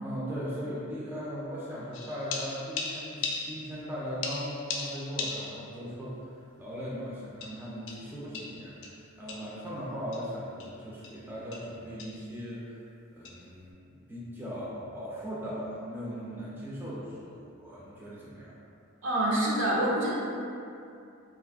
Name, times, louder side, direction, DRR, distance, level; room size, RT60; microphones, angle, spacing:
voice 1, 0.0-6.3 6.6-12.8 13.1-18.5, equal, 10° right, -8 dB, 0.4 m, -38 dB
sound 1, 1.9-3.9 4.2-5.8 6.1-6.2 7.4-9.6 10.1-10.3 10.6-10.7 11.0-11.3 11.5-11.7 12.0-12.3 13.2-13.4, left 4 dB, 65° left, 0.4 m, -38 dB
voice 2, 19.0-20.1, right 1 dB, 65° right, -5 dB, 0.6 m, -26 dB
2.5 x 2.4 x 3.5 m, 2.6 s
head